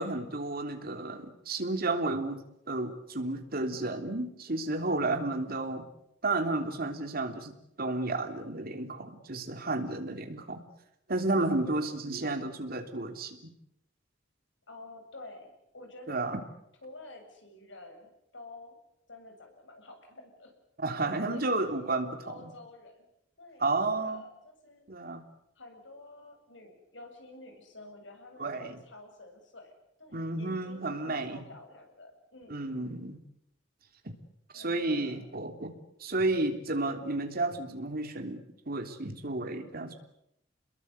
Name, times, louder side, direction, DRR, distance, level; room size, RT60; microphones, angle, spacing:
voice 1, 0.0-5.9 6.2-7.5 7.8-10.6 11.1-13.4 16.1-16.4 20.8-22.5 23.6-24.2 24.9-25.2 28.4-28.8 30.1-31.4 32.5-33.2 34.0-34.1 34.5-35.7 36.0-39.9, right 2 dB, 55° right, 6 dB, 3.3 m, -32 dB
voice 2, 11.6-12.0 14.7-16.3 16.8-18.8 19.1-20.5 21.0-21.9 22.2-23.1 23.4-24.9 25.6-32.7 34.5-35.3, left 2 dB, 70° left, 4 dB, 7.7 m, -49 dB
28.5 x 22.0 x 8.2 m, 0.79 s
head